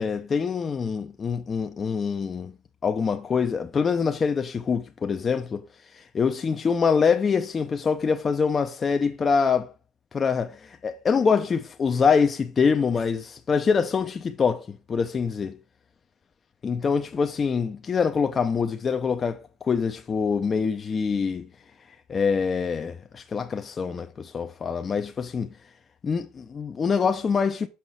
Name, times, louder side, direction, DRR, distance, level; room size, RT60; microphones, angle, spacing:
voice 1, 0.0-2.5 2.8-5.7 5.9-9.7 10.1-15.6 16.6-19.4 19.7-21.5 22.1-25.5 26.0-27.7, left 5 dB, 30° left, 0.5 m, -25 dB
5.8 x 5.2 x 4.6 m
supercardioid pair, 90°, 0 cm